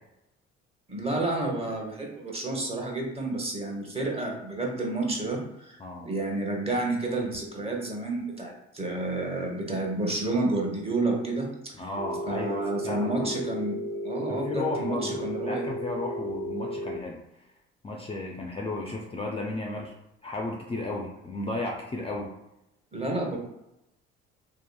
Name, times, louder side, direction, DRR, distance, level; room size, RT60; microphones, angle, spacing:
voice 1, 0.9-11.7 12.3-15.6 22.9-23.4, right 2 dB, 20° right, -1 dB, 0.8 m, -30 dB
voice 2, 11.8-13.3 14.3-17.4 17.8-19.9 20.2-22.3, left 2 dB, 20° left, 0 dB, 0.4 m, -34 dB
Telephone, 12.0-17.0, equal, 50° right, 0.6 m, -34 dB
2.8 x 2.4 x 2.3 m, 0.89 s
supercardioid pair, 70°, 29 cm